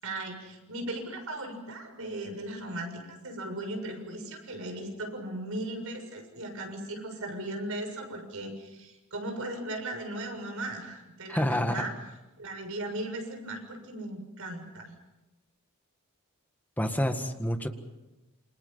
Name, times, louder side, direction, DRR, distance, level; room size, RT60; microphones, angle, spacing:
voice 1, 0.0-11.9 12.4-14.9, right 1 dB, 70° right, 4 dB, 6.9 m, -37 dB
voice 2, 11.3-11.8 16.8-17.7, equal, 10° left, 6 dB, 1.8 m, -28 dB
28.5 x 26.0 x 5.7 m, 1.0 s
head